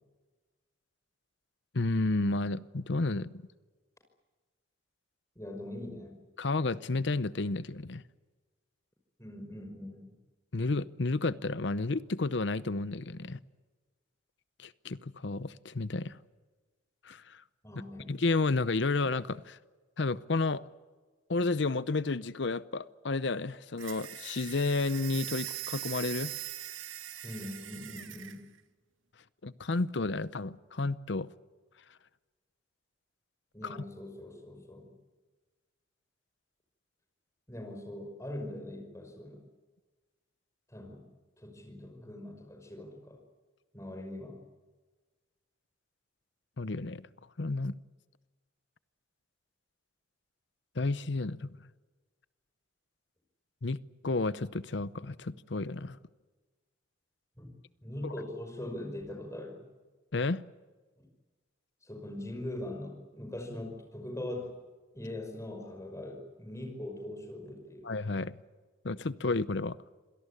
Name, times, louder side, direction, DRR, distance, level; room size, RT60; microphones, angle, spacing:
voice 1, 1.7-3.3 6.4-8.0 10.5-13.4 14.6-16.2 17.0-17.4 18.1-19.6 20.0-20.6 21.3-26.3 29.4-31.3 33.6-33.8 46.6-47.0 47.4-47.8 50.8-51.5 53.6-56.0 58.0-58.1 60.1-60.4 67.8-68.4 68.8-69.8, left 3 dB, 60° left, 17 dB, 0.7 m, -31 dB
voice 2, 5.4-6.2 9.2-10.1 17.6-18.1 27.2-28.5 33.5-34.9 37.5-39.4 40.7-41.1 41.4-43.2 43.7-44.4 57.4-57.5 57.8-59.6 61.0-61.1 61.8-64.6 64.9-67.9, left 1 dB, 15° left, 3 dB, 5.6 m, -41 dB
sound 1, 23.8-28.4, right 13 dB, 85° right, 1.8 m, -41 dB
26.5 x 18.0 x 9.8 m, 1.3 s
head